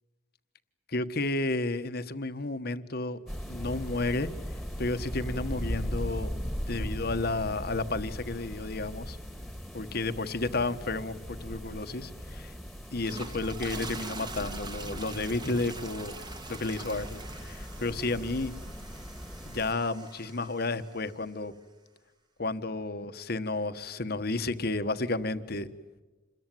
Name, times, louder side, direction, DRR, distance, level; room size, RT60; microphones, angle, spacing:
voice 1, 0.9-3.2 3.5-4.3 4.8-6.3 6.7-9.2 9.7-12.5 12.9-16.1 16.5-18.5 19.4-21.5 22.4-25.7, left 2 dB, 55° left, 10 dB, 1.3 m, -32 dB
sound 1, 3.3-19.7, equal, ahead, 2.1 m, -39 dB
sound 2, 12.9-21.2, right 3 dB, 25° right, 1.7 m, -44 dB
28.0 x 21.5 x 9.2 m, 1.2 s
head